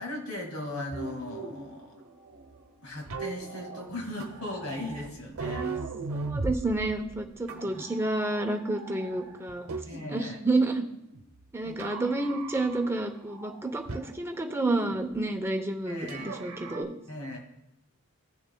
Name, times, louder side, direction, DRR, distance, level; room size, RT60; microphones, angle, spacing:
voice 1, 0.0-2.0 2.8-5.7 7.5-7.9 9.9-10.4 11.6-11.8 15.9-16.3 17.1-17.4, left 1 dB, 75° left, 1 dB, 2.1 m, -38 dB
sound 1, 0.9-10.3 10.6-11.4 11.8-13.0 13.3-14.9 16.1-16.8, right 3 dB, 75° right, 0.8 m, -39 dB
voice 2, 6.1-9.7 10.1-10.9 11.5-16.9, right 2 dB, 10° right, 4 dB, 0.7 m, -30 dB
16.0 x 6.7 x 2.3 m, 0.82 s
head